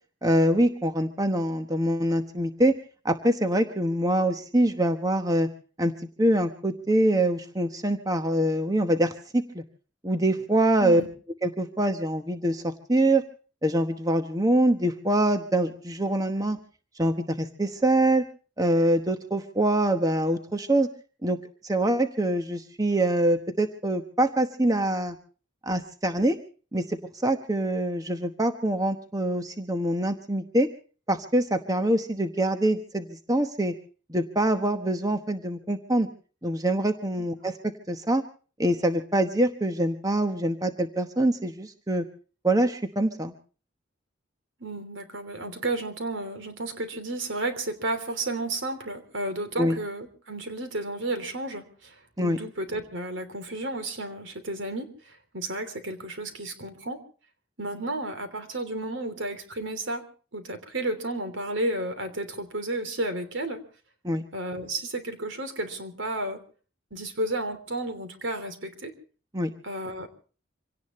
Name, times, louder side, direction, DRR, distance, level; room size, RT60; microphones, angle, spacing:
voice 1, 0.2-2.8 3.0-5.5 5.8-5.9 6.2-9.6 10.0-11.0 11.4-13.2 13.6-16.6 17.0-18.2 18.6-20.9 21.2-21.4 21.6-25.2 25.6-26.4 26.7-30.7 31.1-33.7 34.1-36.1 36.4-37.6 37.9-38.2 38.6-42.0 42.4-43.3 49.6-49.8 52.2-52.4 64.0-64.2 69.3-69.5, right 1 dB, 20° right, 7 dB, 1.0 m, -24 dB
voice 2, 10.8-11.1 37.2-37.3 44.6-57.0 57.6-60.1 60.3-63.6 64.3-66.4 66.9-68.9 69.6-70.1, right 2 dB, 75° right, 9 dB, 3.2 m, -32 dB
26.0 x 17.5 x 3.1 m, 0.38 s
head